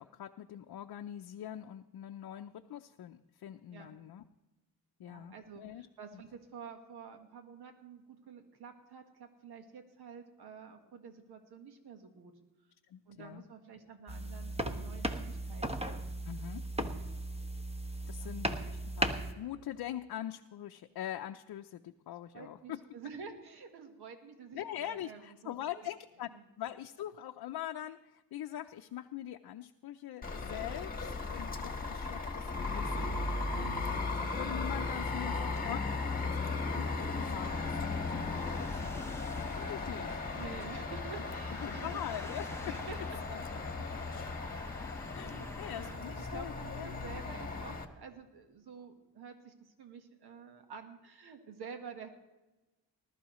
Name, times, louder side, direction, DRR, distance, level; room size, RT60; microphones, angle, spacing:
voice 1, 0.0-4.2 5.0-5.9 6.1-6.2 12.9-13.4 16.3-16.6 18.1-22.8 24.5-26.3 26.6-33.8 34.3-40.2 41.6-42.8 43.3-43.4 45.1-46.9, left 12 dB, 70° left, 5 dB, 0.6 m, -43 dB
voice 2, 5.0-12.3 13.1-15.7 16.5-17.0 18.1-18.3 22.3-25.9 26.3-26.4 39.7-40.0 40.3-41.9 42.6-43.0 44.7-52.1, right 5 dB, 85° right, 5 dB, 1.5 m, -50 dB
sound 1, 14.1-19.3, right 1 dB, 15° right, 1.2 m, -36 dB
sound 2, 30.2-47.8, left 3 dB, 25° left, 1.5 m, -37 dB
sound 3, 35.4-45.9, left 2 dB, 5° left, 0.7 m, -49 dB
20.0 x 12.5 x 3.1 m, 1.1 s
cardioid pair, 100°, 38 cm